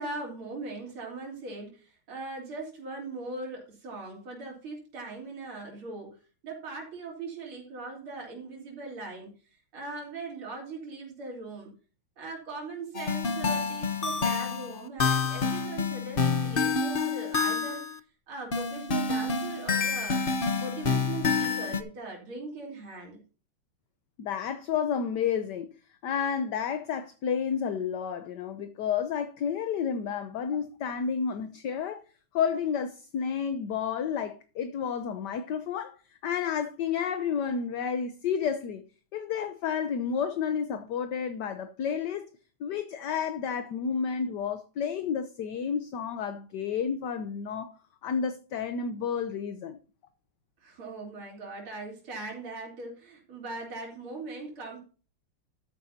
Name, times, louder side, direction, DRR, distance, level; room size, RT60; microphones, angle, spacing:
voice 1, 0.0-6.2 6.4-9.3 9.7-11.7 12.2-17.8 18.3-20.2 20.6-23.2 50.6-54.8, right 3 dB, 75° right, 4.5 m, -40 dB
sound 1, 12.9-18.0 18.5-21.8, left 4 dB, 45° left, 0.7 m, -28 dB
voice 2, 24.2-25.7 26.0-32.0 32.3-36.0 36.2-38.8 39.1-42.3 42.6-47.7 48.0-49.8, left 7 dB, 60° left, 1.3 m, -31 dB
13.0 x 9.5 x 2.8 m
omnidirectional pair, 2.4 m